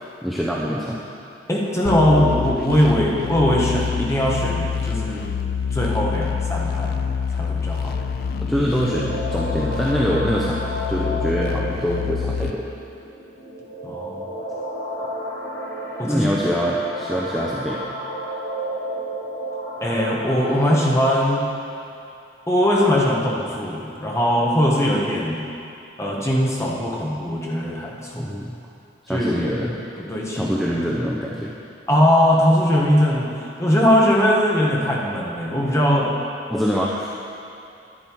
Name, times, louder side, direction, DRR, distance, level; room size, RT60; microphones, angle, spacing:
voice 1, 0.2-1.0 8.4-12.7 16.0-17.8 28.1-28.5 29.0-29.7 30.3-31.5 36.5-37.1, equal, ahead, -5 dB, 0.7 m, -24 dB
voice 2, 1.5-5.2 5.7-7.0 7.3-8.0 13.8-14.2 16.0-16.3 19.8-21.5 22.5-25.4 26.0-28.3 29.1-29.7 30.0-30.5 31.9-33.3 33.6-36.1, equal, 15° left, -3 dB, 1.4 m, -20 dB
sound 1, 1.8-12.5, left 6 dB, 55° left, 0.4 m, -26 dB
sound 2, 7.8-21.4, equal, 75° left, 2.7 m, -32 dB
10.5 x 9.8 x 4.7 m, 2.6 s
head